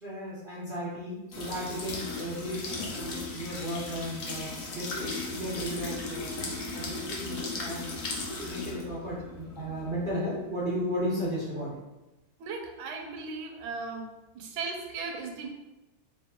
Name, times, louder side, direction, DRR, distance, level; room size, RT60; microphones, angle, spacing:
voice 1, 0.0-6.3 6.7-7.9 8.4-11.7, equal, 40° right, -9 dB, 0.8 m, -35 dB
sound 1, 1.3-11.0, left 3 dB, 75° left, 0.7 m, -37 dB
voice 2, 12.4-14.1 14.3-15.5, right 4 dB, 80° right, 2 dB, 1.4 m, -37 dB
3.3 x 3.0 x 3.5 m, 1.0 s
omnidirectional pair, 2.3 m